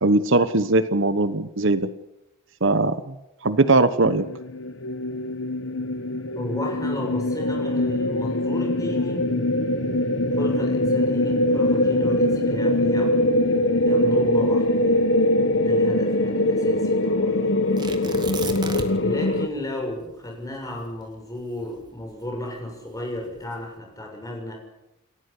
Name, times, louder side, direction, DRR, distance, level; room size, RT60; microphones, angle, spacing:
voice 1, 0.0-1.9 2.6-3.1 3.4-4.3, right 2 dB, 60° right, 13 dB, 1.1 m, -20 dB
sound 1, 3.6-19.5, left 1 dB, 55° left, 1.4 m, -22 dB
voice 2, 6.3-9.3 10.3-13.3 13.8-15.0 15.6-17.4 19.0-24.6, left 1 dB, 15° left, 1 dB, 6.8 m, -34 dB
Tearing, 17.8-19.2 19.5-19.6 20.1-22.5 23.2-23.6, right 3 dB, 20° right, 2.2 m, -35 dB
29.0 x 14.5 x 8.3 m, 0.93 s
head